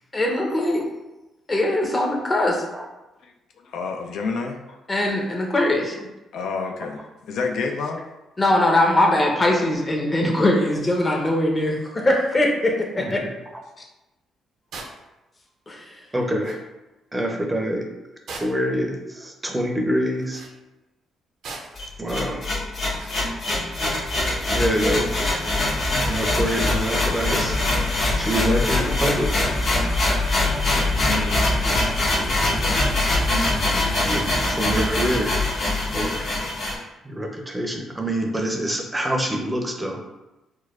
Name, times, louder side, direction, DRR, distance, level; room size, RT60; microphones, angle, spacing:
voice 1, 0.1-0.9 1.5-2.6 4.9-6.1 8.4-13.2 15.7-16.0, left 1 dB, 25° left, 0 dB, 0.7 m, -21 dB
voice 2, 3.6-4.8 6.3-8.0 31.0-32.2, left 4 dB, 75° left, 4 dB, 0.3 m, -29 dB
sound 1, 14.7-15.0 16.1-16.2 16.4-16.6 18.3-18.7 20.2-20.5 21.4-21.9 22.9-23.2, right 3 dB, 70° right, 0.5 m, -38 dB
voice 3, 16.1-16.6 17.1-17.9 18.3-20.4 22.0-22.4 24.5-25.1 26.0-27.6 28.2-29.3 33.6-35.4 35.9-36.5 37.0-40.2, equal, 15° right, 2 dB, 0.5 m, -26 dB
sound 2, 21.8-36.8, left 2 dB, 55° left, 0.9 m, -23 dB
4.4 x 2.2 x 2.3 m, 1.0 s
cardioid pair, 90°, 0 cm